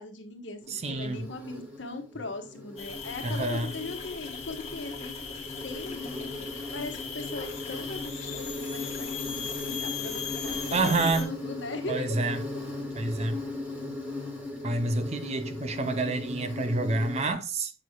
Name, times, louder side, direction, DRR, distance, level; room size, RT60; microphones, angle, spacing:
voice 1, 0.0-5.1 5.6-6.1 6.3-6.4 6.7-12.2, left 3 dB, 65° left, 1.3 m, -39 dB
Insect, 0.6-17.3, left 2 dB, 10° right, 1.8 m, -38 dB
voice 2, 0.7-1.3 3.2-3.7 10.7-11.3 11.9-12.4 12.9-13.4 14.6-17.7, right 3 dB, 35° right, 0.5 m, -28 dB
sound 1, 2.8-11.2, left 6 dB, 35° left, 1.6 m, -38 dB
7.6 x 6.3 x 2.3 m
head